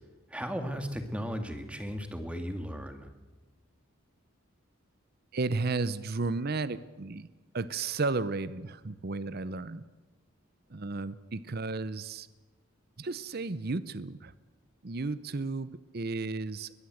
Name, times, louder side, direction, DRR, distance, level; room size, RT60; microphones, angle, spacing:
voice 1, 0.3-3.1, equal, 5° right, 7 dB, 2.0 m, -36 dB
voice 2, 5.3-7.3 7.5-9.8 10.7-12.3 13.0-14.3 14.8-16.7, right 3 dB, 45° right, 16 dB, 0.7 m, -33 dB
22.0 x 21.0 x 7.9 m, 1.2 s
head